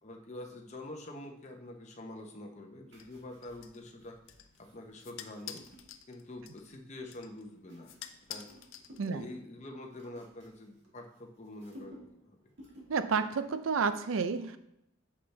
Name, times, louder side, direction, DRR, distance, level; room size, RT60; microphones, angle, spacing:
voice 1, 0.0-4.2 4.6-5.7 6.1-7.9 8.3-8.5 9.1-12.5, left 1 dB, 35° left, 2 dB, 0.9 m, -46 dB
sound 1, 2.9-6.8 7.3-9.2 9.5-11.2 11.5-12.2 12.5-13.0 13.4-13.6, equal, 60° right, 1.8 m, -56 dB
sound 2, 3.0-9.4, left 10 dB, 75° left, 0.5 m, -50 dB
voice 2, 12.9-14.6, right 5 dB, 80° right, 11 dB, 0.5 m, -30 dB
8.5 x 5.7 x 3.3 m, 0.80 s
head